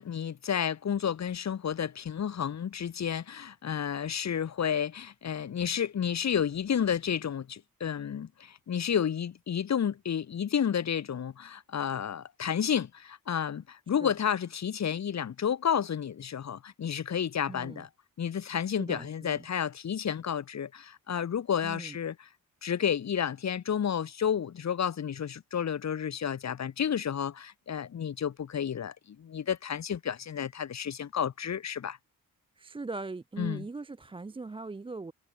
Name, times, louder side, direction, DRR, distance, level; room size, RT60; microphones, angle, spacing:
voice 1, 0.0-17.9 18.2-22.3 22.6-32.0 33.4-33.6, left 8 dB, 50° left, 0.8 m, -31 dB
voice 2, 17.5-17.9 18.8-19.5 21.6-22.0 32.6-35.1, right 3 dB, 15° right, 0.4 m, -40 dB
wide cardioid pair, 170°, 36 cm